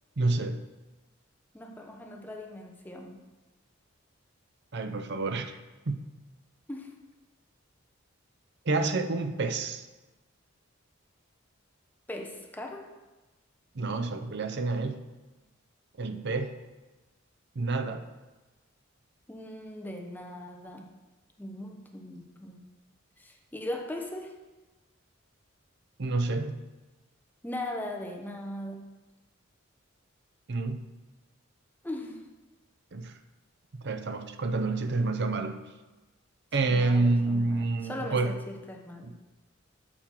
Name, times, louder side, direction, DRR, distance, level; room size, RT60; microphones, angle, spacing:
voice 1, 0.2-0.6 4.7-5.6 5.9-6.0 8.7-9.9 13.7-15.0 16.0-16.6 17.6-18.0 26.0-26.6 30.5-30.9 32.9-33.2 33.8-35.6 36.5-38.4 39.0-39.3, right 3 dB, 55° right, 8 dB, 0.6 m, -28 dB
voice 2, 1.5-3.2 6.7-6.9 12.1-12.9 19.3-20.9 21.4-22.7 23.2-24.4 27.4-28.9 31.8-32.2 36.6-39.1, left 1 dB, 10° left, 2 dB, 0.9 m, -39 dB
8.5 x 6.3 x 4.5 m, 1.1 s
head